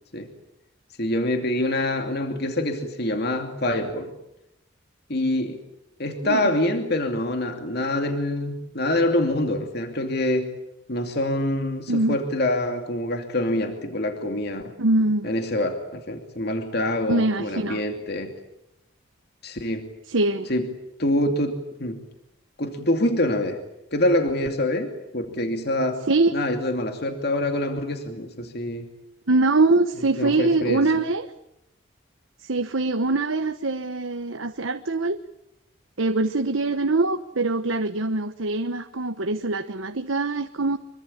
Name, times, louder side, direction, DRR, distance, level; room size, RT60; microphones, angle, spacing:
voice 1, 1.0-4.1 5.1-5.6 6.0-10.5 10.9-14.7 15.2-18.3 19.4-19.9 20.5-20.7 21.0-22.0 22.6-23.6 23.9-26.0 26.3-28.9 30.2-30.9, left 1 dB, 55° left, 5 dB, 2.7 m, -25 dB
voice 2, 6.1-6.5 11.9-12.2 14.8-15.3 17.1-17.8 20.1-20.5 26.1-26.4 29.3-31.3 32.4-35.2 36.0-40.8, right 2 dB, 85° right, 8 dB, 1.2 m, -23 dB
25.5 x 23.5 x 8.9 m, 0.85 s
head